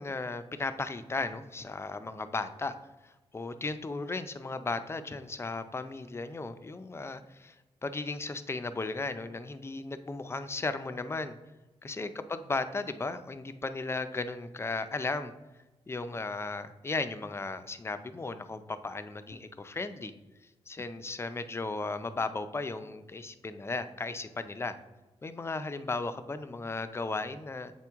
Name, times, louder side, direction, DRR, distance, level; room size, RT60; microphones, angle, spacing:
voice 1, 0.0-2.8 3.0-11.4 11.8-15.3 15.9-20.1 20.7-24.8 25.2-27.7, left 3 dB, 20° left, 11 dB, 0.4 m, -35 dB
7.5 x 4.5 x 3.5 m, 1.1 s
cardioid pair, 95°, 11 cm